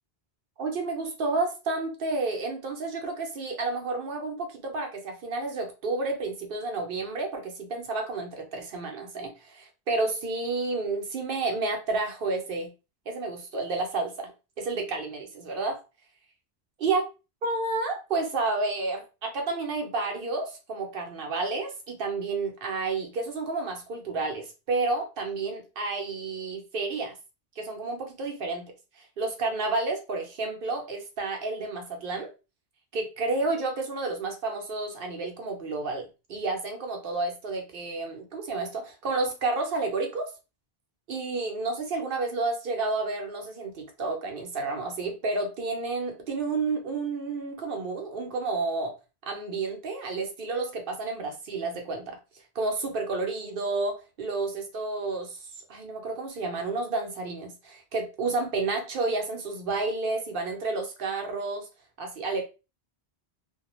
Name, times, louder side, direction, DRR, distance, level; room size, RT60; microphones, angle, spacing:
voice 1, 0.6-12.7 13.1-14.3 14.6-15.8 16.8-17.1 17.4-27.1 27.6-28.6 29.0-32.3 32.9-40.3 41.1-48.9 49.3-52.2 52.5-55.4 55.7-61.7 62.0-62.4, right 3 dB, 60° right, 2 dB, 0.8 m, -30 dB
2.2 x 2.2 x 2.9 m, 0.30 s
omnidirectional pair, 1.1 m